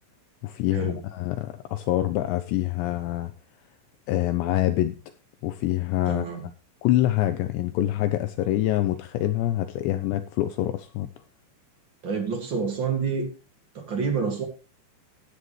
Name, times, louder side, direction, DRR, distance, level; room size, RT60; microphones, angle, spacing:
voice 1, 0.4-3.3 4.1-5.0 5.4-6.3 6.8-11.1, left 14 dB, 85° left, 10 dB, 2.5 m, -25 dB
voice 2, 6.1-6.4 12.0-13.3 13.7-14.4, right 5 dB, 45° right, 4 dB, 1.6 m, -28 dB
16.5 x 9.5 x 3.2 m, 0.31 s
omnidirectional pair, 5.8 m